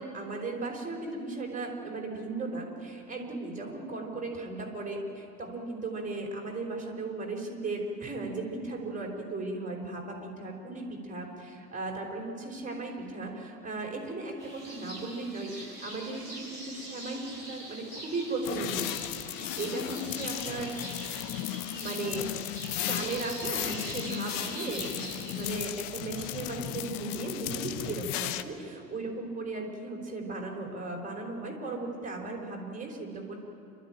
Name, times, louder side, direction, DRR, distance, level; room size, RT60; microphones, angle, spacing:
voice 1, 0.0-20.9 21.7-22.4 22.8-33.4, right 3 dB, 15° right, 0 dB, 5.0 m, -36 dB
sound 1, 14.4-25.5, right 1 dB, 85° left, 6.6 m, -43 dB
sound 2, 18.4-28.4, left 13 dB, 45° left, 1.0 m, -35 dB
28.5 x 13.0 x 9.1 m, 2.8 s
figure-of-eight pair, 75°, 49 cm